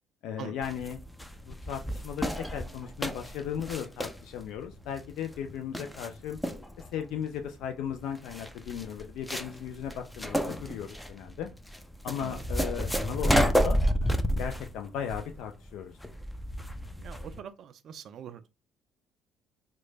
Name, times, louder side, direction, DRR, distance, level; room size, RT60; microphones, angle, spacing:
voice 1, 0.2-1.0 1.4-6.4 6.9-11.5 12.0-13.8 14.4-16.0, left 8 dB, 65° left, 0.3 m, -36 dB
sound 1, 0.6-17.4, equal, 5° left, 0.5 m, -31 dB
voice 2, 17.0-18.5, right 8 dB, 55° right, 0.3 m, -43 dB
3.1 x 2.1 x 3.8 m
hypercardioid pair, 55°, 0 cm